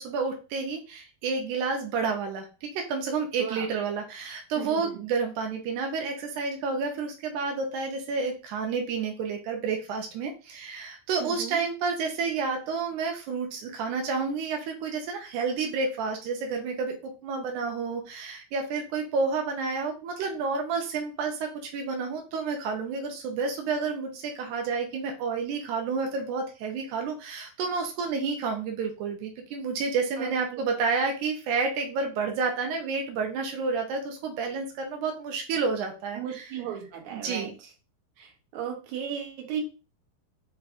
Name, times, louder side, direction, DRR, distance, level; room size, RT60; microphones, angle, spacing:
voice 1, 0.0-36.5 37.1-37.6, right 4 dB, 85° right, 3 dB, 1.8 m, -30 dB
voice 2, 4.6-5.0 11.2-11.6 30.2-30.6 36.2-37.5 38.2-39.6, right 9 dB, 65° right, 0 dB, 2.0 m, -36 dB
5.9 x 3.3 x 2.5 m, 0.33 s
omnidirectional pair, 4.3 m